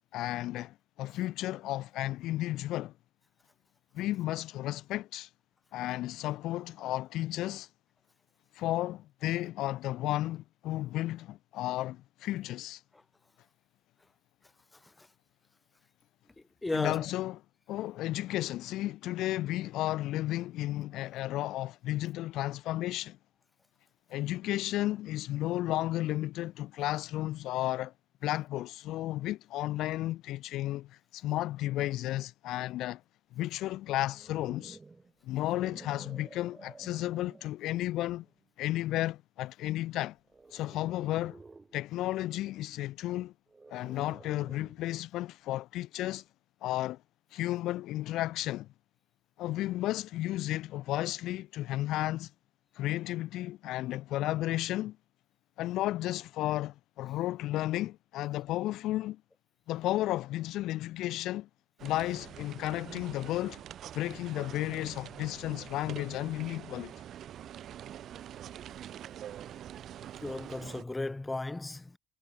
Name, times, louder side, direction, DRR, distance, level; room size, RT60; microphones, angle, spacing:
voice 1, 0.1-2.9 3.9-5.3 5.7-7.7 8.5-12.8 16.7-17.4 17.7-23.2 24.1-27.9 28.2-33.0 33.3-34.8 35.2-38.3 38.6-40.2 40.5-41.4 41.7-43.3 43.7-46.2 46.6-47.0 47.3-48.7 49.4-52.3 52.8-55.0 55.6-59.2 59.7-61.5 61.8-63.6 63.9-66.9, left 15 dB, 80° left, 0.5 m, -33 dB
voice 2, 16.6-17.1 70.2-72.0, left 2 dB, 15° left, 0.8 m, -35 dB
sound 1, 33.9-37.6 38.2-38.5 40.3-41.8 43.5-44.9, right 3 dB, 25° right, 5.6 m, -52 dB
sound 2, 61.8-70.8, right 10 dB, 65° right, 2.4 m, -45 dB
supercardioid pair, 75°, 0 cm